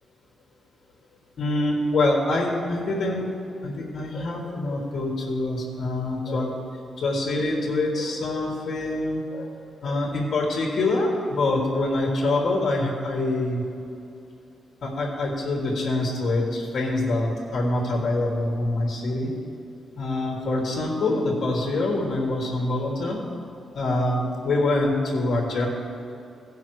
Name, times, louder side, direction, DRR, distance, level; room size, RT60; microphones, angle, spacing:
voice 1, 1.4-3.3 3.6-6.5 7.0-9.5 9.8-13.6 14.8-19.3 20.0-23.2 23.7-25.7, left 2 dB, 50° left, -1 dB, 1.4 m, -25 dB
16.5 x 5.7 x 4.7 m, 2.7 s
wide cardioid pair, 165°, 0 cm